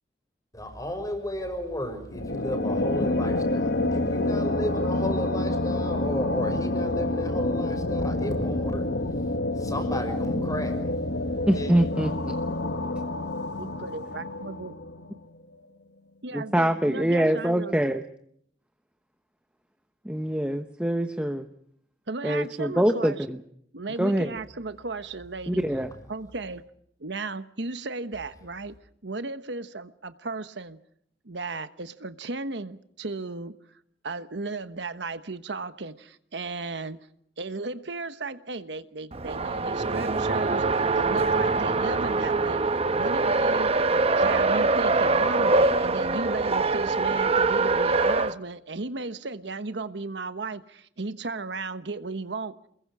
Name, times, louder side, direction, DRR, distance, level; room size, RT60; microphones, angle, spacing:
voice 1, 0.5-11.7, left 1 dB, 20° left, 5.8 m, -33 dB
sound 1, 2.1-15.2, left 2 dB, 70° left, 1.8 m, -28 dB
voice 2, 11.5-12.4 16.3-18.0 20.0-21.5 22.2-23.4 24.0-24.3 25.5-25.9, right 1 dB, 5° right, 1.1 m, -24 dB
voice 3, 13.6-14.7 16.2-17.7 22.1-23.2 23.7-25.6 26.1-26.6 27.0-28.7 29.0-30.8 31.2-33.6 34.0-37.0 37.4-42.6 42.9-43.7 44.2-52.5, right 3 dB, 75° right, 1.2 m, -35 dB
Race car auto racing, 39.1-48.3, right 3 dB, 35° right, 1.0 m, -23 dB
29.0 x 21.5 x 4.9 m
head